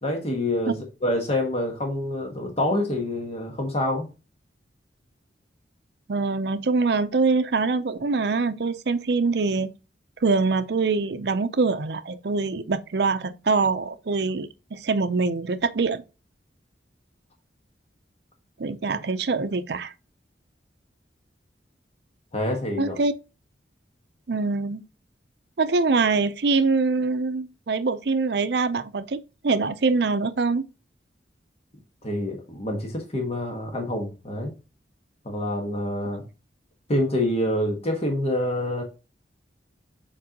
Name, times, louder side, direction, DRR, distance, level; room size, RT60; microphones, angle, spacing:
voice 1, 0.0-4.1 22.3-22.9 32.0-34.5 35.2-36.2 36.9-38.8, left 1 dB, 35° left, 1.4 m, -26 dB
voice 2, 6.1-9.7 10.2-16.0 18.6-19.9 22.8-23.1 24.3-24.8 25.6-30.6, right 4 dB, 65° right, 0.5 m, -24 dB
7.4 x 4.7 x 2.9 m
head